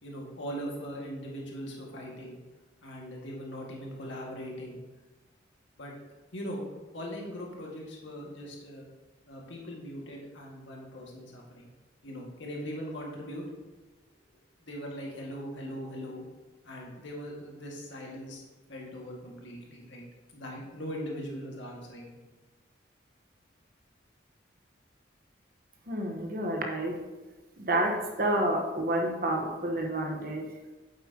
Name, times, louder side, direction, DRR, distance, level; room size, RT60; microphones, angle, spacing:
voice 1, 0.0-2.4 2.8-4.8 5.8-5.9 6.3-6.6 6.9-8.9 9.3-11.7 12.0-13.4 14.6-16.2 16.6-18.4 18.7-20.1 20.3-22.2, equal, 85° left, -2 dB, 1.9 m, -40 dB
voice 2, 25.9-27.0 27.6-30.5, right 1 dB, 50° right, 2 dB, 1.2 m, -29 dB
9.1 x 7.7 x 2.9 m, 1.2 s
head